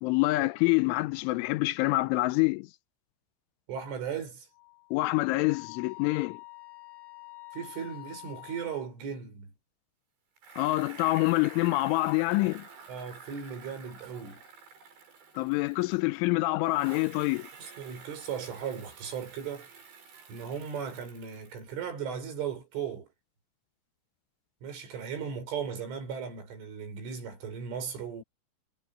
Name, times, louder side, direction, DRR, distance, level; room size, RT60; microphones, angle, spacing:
voice 1, 0.0-2.7 4.9-6.4 10.6-12.7 15.4-17.5, left 21 dB, 90° left, 3.3 m, -26 dB
voice 2, 3.7-4.5 7.5-9.5 12.9-14.4 17.6-19.7 20.3-23.1 24.6-28.2, right 7 dB, 85° right, 8.6 m, -37 dB
Wind instrument woodwind instrument, 4.5-8.9, left 27 dB, 60° left, 6.5 m, -48 dB
Bicycle, 10.4-16.2 16.7-21.9, right 5 dB, 65° right, 9.2 m, -50 dB
omnidirectional pair, 5.5 m